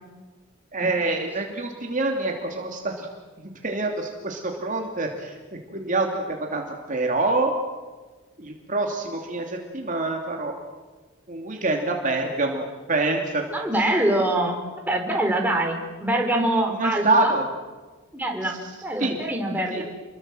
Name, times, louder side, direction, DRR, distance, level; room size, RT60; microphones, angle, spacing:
voice 1, 0.7-3.1 3.4-5.4 5.7-6.6 6.9-7.5 8.4-10.5 11.3-13.4 16.7-17.4 18.4-18.5 19.0-19.2 19.7-19.8, right 2 dB, 40° right, 2 dB, 2.8 m, -26 dB
voice 2, 13.5-14.6 14.9-17.3 18.1-19.8, right 1 dB, 10° right, 2 dB, 4.4 m, -24 dB
29.0 x 22.5 x 7.8 m, 1.3 s
head